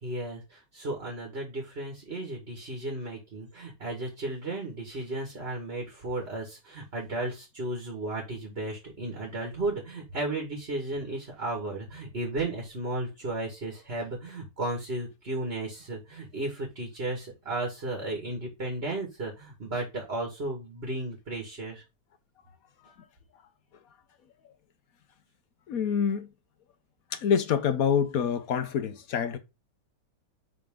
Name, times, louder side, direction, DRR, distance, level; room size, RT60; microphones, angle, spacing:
voice 1, 0.0-21.8, right 2 dB, 35° right, 2.0 m, -34 dB
voice 2, 25.7-26.3 27.1-29.4, left 7 dB, 60° left, 1.0 m, -26 dB
10.0 x 3.7 x 3.7 m
omnidirectional pair, 2.1 m